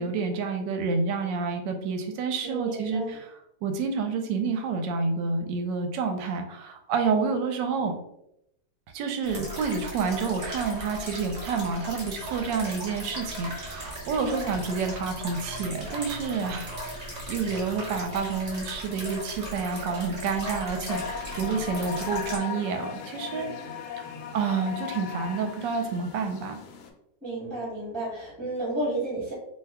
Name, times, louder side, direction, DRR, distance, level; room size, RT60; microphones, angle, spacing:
voice 1, 0.0-3.3 3.6-7.9 8.9-16.8 17.3-23.5 24.0-24.1 24.3-26.6, right 5 dB, 75° right, 5 dB, 1.2 m, -29 dB
voice 2, 2.4-3.2 7.1-7.3 14.3-14.5 23.3-23.7 27.2-29.3, right 2 dB, ahead, -8 dB, 0.5 m, -33 dB
sound 1, 9.2-22.4, equal, 35° right, 0.7 m, -37 dB
sound 2, 20.9-26.9, left 7 dB, 70° left, 0.9 m, -37 dB
3.0 x 2.2 x 3.4 m, 0.79 s
omnidirectional pair, 2.0 m